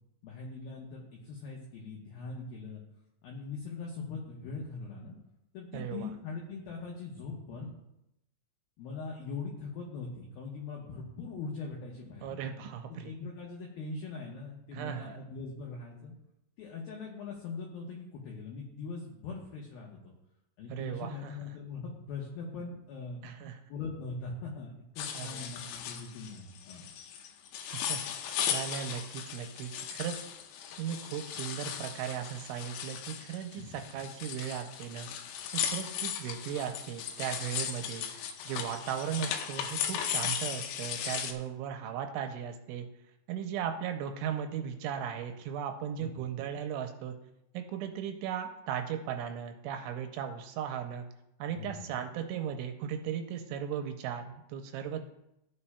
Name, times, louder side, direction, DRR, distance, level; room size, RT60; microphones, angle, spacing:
voice 1, 0.2-2.8 3.2-5.2 5.5-7.7 8.8-12.4 12.9-16.1 16.6-20.1 20.6-23.2 23.7-26.8 33.6-33.8 46.0-46.2 51.5-51.9, left 4 dB, 75° left, -2 dB, 2.3 m, -41 dB
voice 2, 5.7-6.1 12.2-13.1 14.7-15.2 20.7-21.5 23.2-23.6 25.1-25.4 27.7-30.2 30.8-35.1 35.5-38.1 38.5-42.9 43.3-47.2 47.5-51.1 51.4-55.1, right 9 dB, 85° right, 5 dB, 2.9 m, -37 dB
sound 1, 25.0-41.3, left 9 dB, 90° left, 3.2 m, -37 dB
14.5 x 8.4 x 2.2 m, 0.86 s
omnidirectional pair, 5.6 m